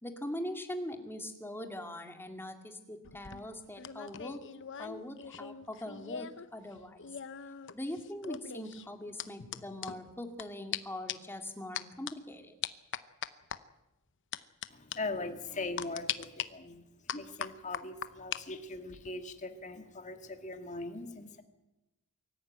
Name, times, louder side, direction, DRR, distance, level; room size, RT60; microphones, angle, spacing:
voice 1, 0.0-4.4 4.8-7.0 7.7-12.5, left 1 dB, 10° left, 5 dB, 2.2 m, -42 dB
sound 1, 3.0-6.5 6.7-10.4 10.7-10.8 11.1-11.4 11.8-12.1 12.6-13.6 14.3-14.7 14.9-15.0 15.8-16.5 17.1-18.4 18.7-19.1, left 9 dB, 55° left, 0.9 m, -40 dB
voice 2, 14.7-21.4, left 2 dB, 35° left, 7 dB, 1.9 m, -40 dB
23.5 x 14.0 x 9.3 m, 0.99 s
head